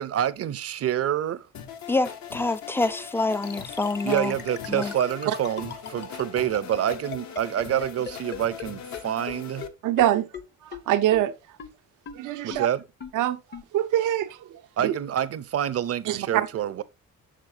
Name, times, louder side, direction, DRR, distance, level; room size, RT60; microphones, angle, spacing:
voice 1, 0.0-1.5 4.0-9.7 12.4-12.8 14.8-16.8, right 10 dB, 50° right, 0.6 m, -27 dB
sound 1, 1.5-9.7, left 7 dB, 65° left, 1.0 m, -40 dB
voice 2, 1.9-4.4 4.7-4.9, left 2 dB, 10° left, 0.3 m, -26 dB
sound 2, 3.4-8.7 8.9-9.0 9.3-9.4 9.6-9.7 10.0-10.1 10.3-10.4 10.7-10.8 11.1-11.2 11.6-11.7 12.1-12.2 12.5-12.6 13.0-13.1 13.5-13.6, left 6 dB, 35° left, 0.8 m, -36 dB
voice 3, 9.8-10.3 10.6-11.3 12.1-12.7 13.1-13.4 13.7-14.9 16.1-16.5, right 12 dB, 85° right, 0.7 m, -24 dB
7.4 x 5.8 x 2.8 m
cardioid pair, 90°, 30 cm